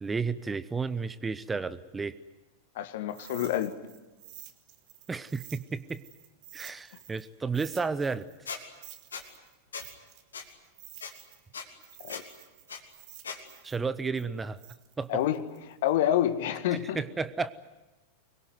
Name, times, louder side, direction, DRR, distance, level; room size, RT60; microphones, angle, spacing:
voice 1, 0.0-2.2 5.1-6.0 6.5-8.3 13.6-14.6 15.0-15.2 16.7-17.5, right 4 dB, 15° right, 16 dB, 0.8 m, -32 dB
voice 2, 2.8-3.7 12.0-12.2 15.1-17.0, left 11 dB, 55° left, 12 dB, 1.8 m, -28 dB
sound 1, 3.1-7.3 7.5-11.5 11.8-15.9, right 14 dB, 45° right, 2.2 m, -51 dB
Squeak, 8.5-8.6 9.1-9.2 9.7-9.9 10.3-10.4 11.0-11.1 11.5-11.7 12.1-12.2 12.7-12.8 13.2-13.4, left 5 dB, 70° left, 2.9 m, -38 dB
25.0 x 21.5 x 9.5 m, 1.1 s
figure-of-eight pair, 90°, 0 cm